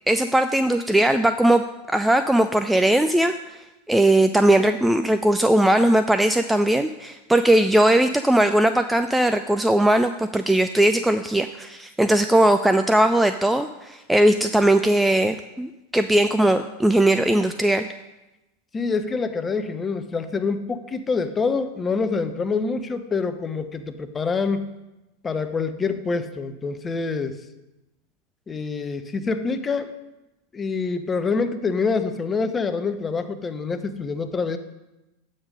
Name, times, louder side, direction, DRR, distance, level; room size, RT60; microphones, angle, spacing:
voice 1, 0.1-1.6 1.9-3.6 3.9-17.9, right 1 dB, 5° right, 9 dB, 0.4 m, -19 dB
voice 2, 18.7-24.7 25.2-27.4 28.5-29.9 30.5-34.6, left 4 dB, 20° left, 10 dB, 0.7 m, -26 dB
8.7 x 6.6 x 5.2 m, 1.0 s
figure-of-eight pair, 90°, 0 cm